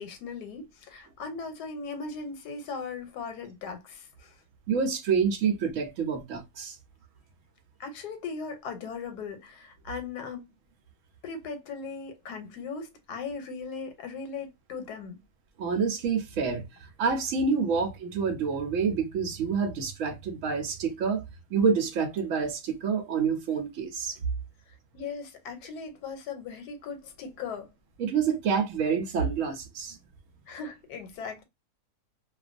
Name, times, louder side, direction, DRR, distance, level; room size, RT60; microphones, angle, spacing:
voice 1, 0.0-4.3 7.8-10.4 11.2-15.2 24.9-27.7 30.5-31.4, left 5 dB, 90° left, 1.2 m, -38 dB
voice 2, 4.7-6.8 15.6-16.6 17.0-21.2 21.5-24.2 28.0-30.0, right 6 dB, 70° right, 0.8 m, -27 dB
2.4 x 2.2 x 2.4 m
omnidirectional pair, 1.7 m